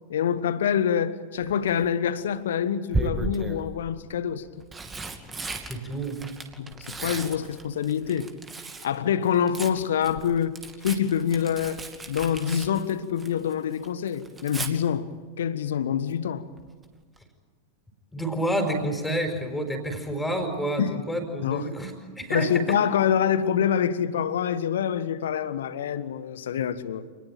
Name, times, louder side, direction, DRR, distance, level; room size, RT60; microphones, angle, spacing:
voice 1, 0.1-4.7 6.6-8.3 8.8-10.6 10.8-11.8 12.1-15.1 15.4-16.4 20.8-20.9 21.4-21.7 22.3-27.0, left 8 dB, 60° left, 1.4 m, -26 dB
Tearing, 1.4-1.9 2.9-3.7 4.4-8.9 9.2-13.5 13.8-14.7 16.6-16.9 17.2-17.3, right 3 dB, 15° right, 2.5 m, -35 dB
voice 2, 5.7-6.2 18.1-22.8, right 1 dB, 5° left, 5.0 m, -29 dB
27.5 x 20.0 x 9.1 m
figure-of-eight pair, 90°, 0 cm